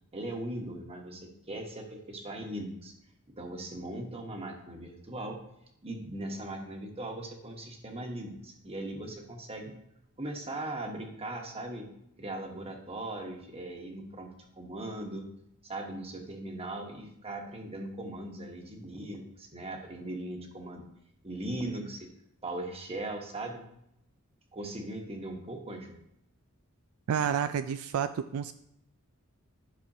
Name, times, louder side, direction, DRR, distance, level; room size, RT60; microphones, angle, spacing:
voice 1, 0.1-2.9 3.3-5.4 5.8-9.7 10.2-11.9 12.2-14.3 14.6-15.3 15.6-20.8 21.2-22.1 22.4-23.6 24.5-26.0, right 1 dB, 30° right, 2 dB, 1.2 m, -39 dB
voice 2, 27.1-28.5, right 8 dB, 70° right, 11 dB, 0.3 m, -30 dB
11.5 x 6.1 x 2.7 m, 0.78 s
head